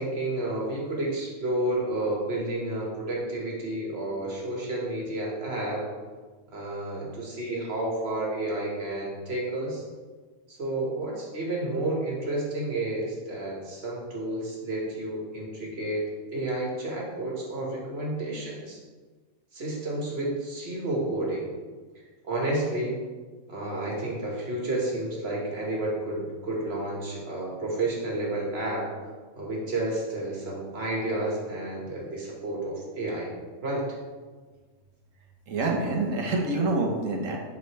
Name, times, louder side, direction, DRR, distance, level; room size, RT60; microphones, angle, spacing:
voice 1, 0.0-5.8 6.5-9.8 10.5-16.0 16.3-18.8 19.5-21.5 22.2-23.0 23.5-28.8 29.4-33.3 33.6-33.9, right 1 dB, 50° right, -3 dB, 2.0 m, -31 dB
voice 2, 35.5-37.4, right 2 dB, 75° right, 1 dB, 1.5 m, -26 dB
7.9 x 6.6 x 3.4 m, 1.4 s
omnidirectional pair, 1.4 m